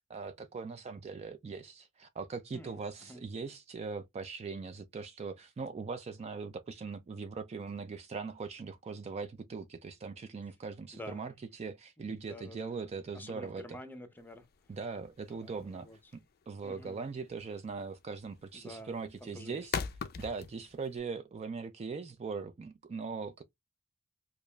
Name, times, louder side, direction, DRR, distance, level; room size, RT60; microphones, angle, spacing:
voice 1, 0.0-13.8 14.7-19.8 20.2-23.4, right 4 dB, 30° right, 0.3 m, -41 dB
voice 2, 12.0-12.7 13.1-14.5 15.3-15.6 15.8-16.0 16.6-17.0 18.5-19.7, left 1 dB, 10° left, 0.6 m, -48 dB
sound 1, 14.2-21.0, left 6 dB, 45° left, 0.4 m, -41 dB
4.8 x 2.4 x 2.3 m
head